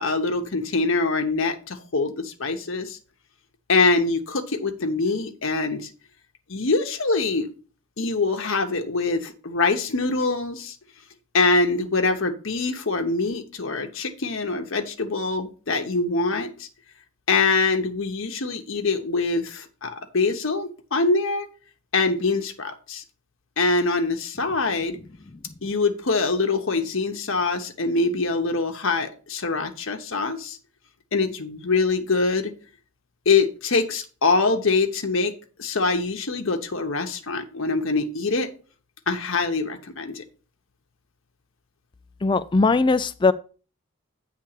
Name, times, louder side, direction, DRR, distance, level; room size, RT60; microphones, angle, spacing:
voice 1, 0.0-3.0 3.7-5.9 6.5-7.5 8.0-10.8 11.3-16.7 17.3-21.5 21.9-23.0 23.6-25.0 25.6-30.6 31.1-32.5 33.3-35.3 35.6-38.5 39.1-40.2, left 3 dB, 60° left, 0.9 m, -24 dB
voice 2, 42.2-43.3, left 3 dB, 20° left, 0.3 m, -19 dB
8.9 x 3.3 x 6.5 m
head